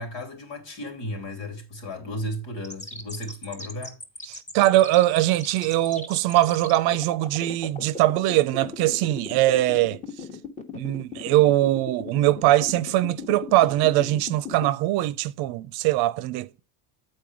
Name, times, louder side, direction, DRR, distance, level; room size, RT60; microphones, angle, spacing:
voice 1, 0.0-4.0, left 1 dB, 80° left, 3.3 m, -34 dB
sound 1, 2.6-14.7, left 4 dB, 15° left, 1.1 m, -37 dB
voice 2, 4.3-10.0 10.7-16.6, right 15 dB, 55° right, 0.6 m, -22 dB
7.8 x 4.5 x 4.7 m
supercardioid pair, 125°, 45 cm